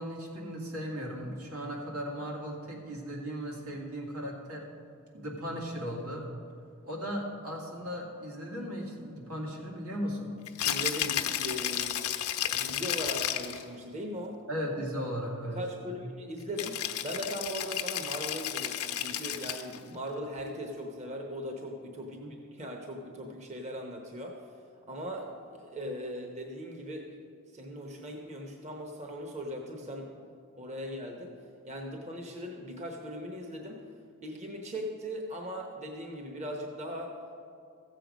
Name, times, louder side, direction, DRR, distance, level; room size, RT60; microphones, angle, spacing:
voice 1, 0.0-4.7 5.1-6.3 6.8-10.3 14.5-16.0 22.2-22.3, equal, 85° right, -2 dB, 2.3 m, -37 dB
Rattle (instrument), 10.5-13.6 16.6-19.8, left 11 dB, 85° left, 0.7 m, -32 dB
voice 2, 10.6-12.1 12.5-14.4 15.4-22.2 22.5-24.4 24.9-27.2 27.5-30.1 30.6-31.4 31.6-33.8 34.2-37.2, equal, 30° right, 2 dB, 0.9 m, -39 dB
15.0 x 7.7 x 5.1 m, 2.3 s
head